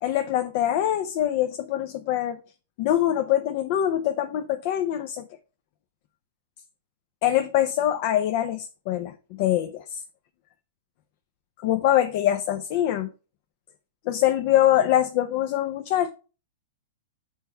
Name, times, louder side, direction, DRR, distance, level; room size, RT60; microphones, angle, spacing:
voice 1, 0.0-2.4 2.8-5.3 7.2-10.0 11.6-13.1 14.1-16.1, left 12 dB, 50° left, 0.7 m, -24 dB
7.3 x 4.5 x 4.6 m
hypercardioid pair, 105°, 0 cm